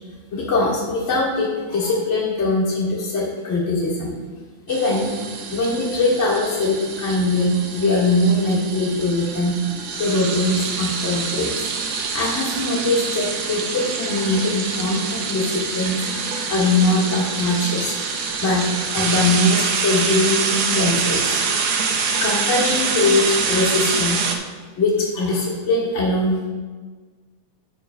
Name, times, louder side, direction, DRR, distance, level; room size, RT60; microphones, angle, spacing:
voice 1, 0.3-4.1 4.7-5.1 5.5-9.5 10.0-11.7 12.1-16.0 16.5-18.0 18.4-18.6 18.9-21.4 22.2-24.2 24.8-26.5, left 2 dB, 35° left, -7 dB, 1.3 m, -21 dB
sound 1, 4.7-24.4, right 5 dB, 75° right, 1.8 m, -25 dB
12.0 x 8.7 x 2.2 m, 1.4 s
omnidirectional pair, 3.4 m